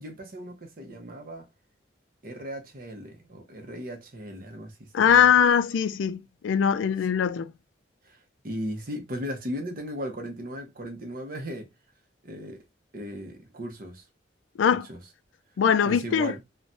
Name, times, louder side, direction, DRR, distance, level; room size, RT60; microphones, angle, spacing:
voice 1, 0.0-1.5 2.2-5.3 8.1-8.2 8.4-11.7 12.2-12.6 12.9-14.0 14.7-15.0 15.8-16.4, equal, 50° right, 0.8 m, -37 dB
voice 2, 4.9-7.5 14.6-14.9 15.6-16.3, left 7 dB, 85° left, 0.3 m, -21 dB
3.1 x 2.2 x 2.6 m
head